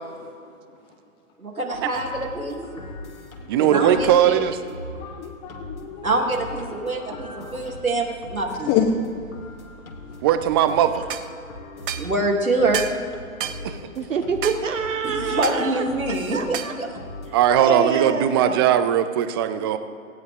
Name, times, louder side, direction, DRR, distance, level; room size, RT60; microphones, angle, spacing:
voice 1, 1.4-2.6 3.6-4.4 6.0-8.7 12.0-12.8 15.0-16.9, right 2 dB, 85° right, 0 dB, 3.3 m, -25 dB
sound 1, 1.7-17.8, left 1 dB, 80° left, 2.8 m, -40 dB
voice 2, 3.5-4.6 10.2-11.0 13.6-13.8 17.3-19.8, right 10 dB, 20° right, 11 dB, 0.5 m, -19 dB
voice 3, 5.0-6.1 6.8-6.9 7.3-7.7 8.7-8.9 13.6-13.7 19.6-19.7, left 11 dB, 20° left, 2 dB, 0.8 m, -27 dB
sound 2, 11.1-11.3 11.9-12.1 12.7-13.0 13.4-13.6 14.4-14.6 15.4-15.6 16.5-16.8, right 10 dB, 40° right, 1.0 m, -30 dB
voice 4, 13.9-15.8 16.3-16.7 17.6-18.6, right 6 dB, 65° right, 6 dB, 1.3 m, -26 dB
18.0 x 16.5 x 3.7 m, 2.5 s
figure-of-eight pair, 125°, 41 cm